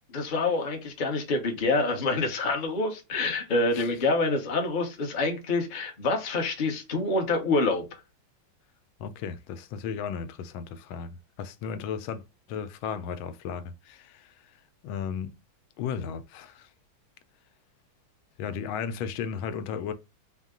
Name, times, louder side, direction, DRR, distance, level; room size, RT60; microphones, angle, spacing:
voice 1, 0.1-7.8, left 3 dB, 40° left, 0.7 m, -26 dB
voice 2, 9.0-12.2 12.5-14.5 14.8-15.3 15.8-16.7 18.4-19.9, left 7 dB, 85° left, 1.4 m, -35 dB
4.5 x 2.1 x 3.6 m
omnidirectional pair, 2.2 m